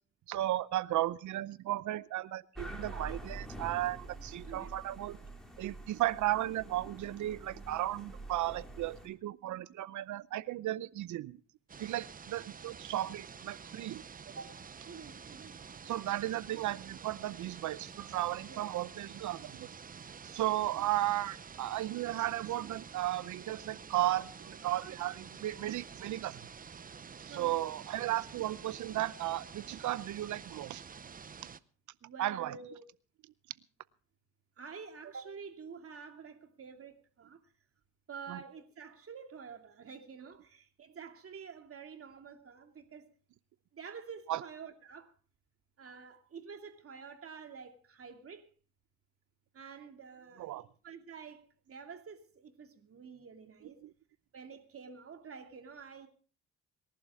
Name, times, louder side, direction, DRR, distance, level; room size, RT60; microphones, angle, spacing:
voice 1, 0.3-5.2 5.6-11.4 11.8-14.0 15.8-19.7 20.2-26.4 27.2-30.8 32.2-32.5 38.3-38.4 44.3-44.4 50.4-50.6, right 15 dB, 75° right, 0.7 m, -35 dB
sound 1, 2.5-9.1, right 2 dB, ahead, 4.8 m, -46 dB
sound 2, 11.7-31.6, right 6 dB, 30° right, 0.7 m, -49 dB
voice 2, 14.3-15.5 18.5-18.6 27.3-27.6 32.0-32.8 34.6-37.4 38.1-43.1 43.7-45.1 45.8-48.5 49.5-53.8 54.3-56.1, right 6 dB, 50° right, 2.6 m, -49 dB
27.0 x 11.5 x 3.6 m
cardioid pair, 90°, 30 cm